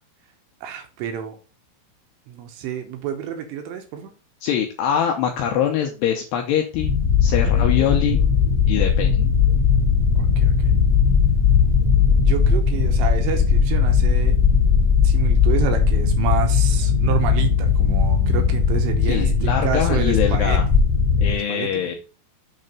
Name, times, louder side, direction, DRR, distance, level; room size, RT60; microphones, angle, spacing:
voice 1, 0.6-1.4 2.3-4.1 7.4-7.7 10.2-10.7 12.3-14.3 15.0-20.6 21.3-22.0, right 9 dB, 75° right, 5 dB, 2.8 m, -29 dB
voice 2, 4.4-6.9 7.2-8.2 8.7-9.2 19.1-20.6 21.2-22.0, left 9 dB, 90° left, 3 dB, 2.4 m, -23 dB
sound 1, 6.7-21.4, left 6 dB, 5° left, 1.4 m, -18 dB
7.7 x 3.3 x 5.2 m, 0.35 s
omnidirectional pair, 5.5 m